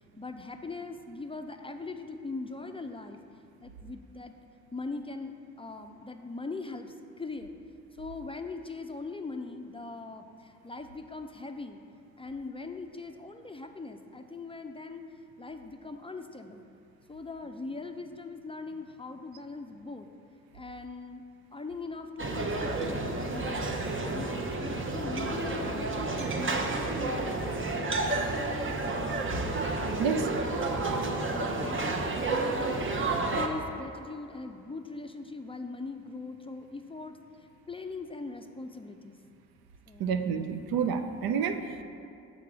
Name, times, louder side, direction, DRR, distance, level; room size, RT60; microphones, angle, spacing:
voice 1, 0.2-3.2 3.6-4.3 4.7-7.5 7.9-11.8 12.2-15.0 15.4-16.6 17.1-20.1 20.5-21.2 21.5-23.7 24.0-24.4 24.7-27.5 28.3-28.8 30.0-30.7 31.4-32.8 33.4-37.2 37.7-39.2 39.9-40.1, left 3 dB, 15° left, 6 dB, 0.4 m, -40 dB
sound 1, 22.2-33.5, right 3 dB, 35° right, 0.7 m, -31 dB
voice 2, 40.0-41.8, right 7 dB, 80° right, 8 dB, 0.5 m, -29 dB
5.9 x 3.8 x 6.0 m, 2.6 s
supercardioid pair, 50°, 36 cm